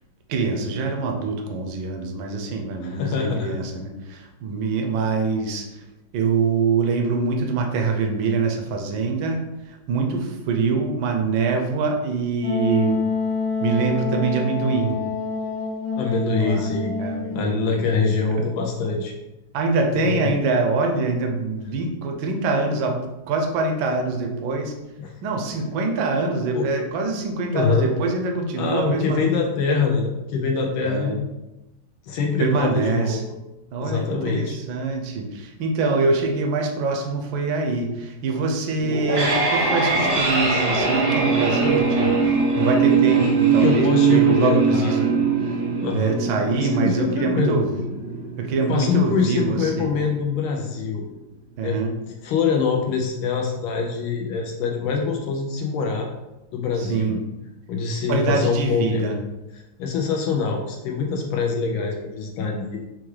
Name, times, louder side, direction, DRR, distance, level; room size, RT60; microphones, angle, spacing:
voice 1, 0.3-5.8 6.1-9.4 9.7-13.0 13.6-15.0 16.4-16.7 17.0-17.8 19.5-23.0 23.3-24.7 25.2-29.2 30.8-31.2 32.4-33.2 33.7-45.1 45.9-47.8 48.4-49.9 51.6-51.9 56.8-57.2 58.1-59.2, right 4 dB, 75° right, 3 dB, 1.4 m, -24 dB
voice 2, 2.8-3.6 16.0-17.0 17.3-19.1 19.9-20.3 25.0-25.1 26.5-26.7 27.5-27.9 28.6-31.2 32.0-33.2 33.8-34.6 43.5-44.9 45.8-46.2 46.5-47.6 48.5-51.0 51.6-51.8 52.2-56.1 56.5-57.2 57.7-59.0 59.8-62.8, left 5 dB, 80° left, 1 dB, 1.4 m, -24 dB
Wind instrument woodwind instrument, 12.4-18.0, left 4 dB, 60° left, 1.4 m, -27 dB
sound 1, 38.8-49.8, right 5 dB, 50° right, 0.7 m, -21 dB
5.8 x 2.3 x 3.2 m, 1.0 s
omnidirectional pair, 2.3 m